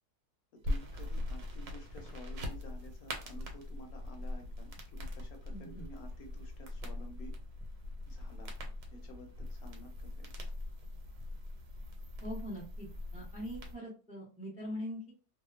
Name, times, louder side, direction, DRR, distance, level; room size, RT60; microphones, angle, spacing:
voice 1, 0.6-7.3 8.1-8.5 8.9-10.3, equal, 75° left, 4 dB, 1.1 m, -52 dB
sound 1, 0.6-13.7, left 1 dB, 85° right, 1.2 m, -41 dB
voice 2, 5.5-5.9 12.2-12.9 13.1-15.1, equal, 10° right, -3 dB, 0.4 m, -42 dB
2.8 x 2.0 x 2.3 m, 0.34 s
omnidirectional pair, 1.6 m